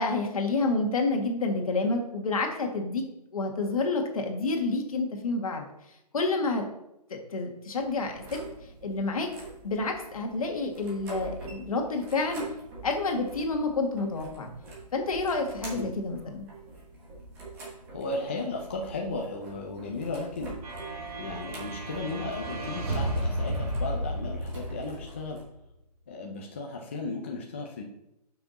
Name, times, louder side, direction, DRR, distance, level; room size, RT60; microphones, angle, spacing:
voice 1, 0.0-3.1 3.3-5.7 6.1-6.6 7.1-8.4 8.8-9.3 9.6-12.4 12.8-14.5 14.9-16.5, left 3 dB, 60° left, 3 dB, 1.8 m, -29 dB
sound 1, 7.7-25.4, right 3 dB, 10° right, 1.2 m, -45 dB
voice 2, 17.9-20.5 21.2-25.4 26.1-27.8, left 3 dB, 20° left, 0 dB, 0.4 m, -35 dB
sound 2, 20.6-25.3, right 1 dB, 60° right, 2.5 m, -33 dB
8.2 x 5.9 x 4.0 m, 0.85 s
hypercardioid pair, 170°, 21 cm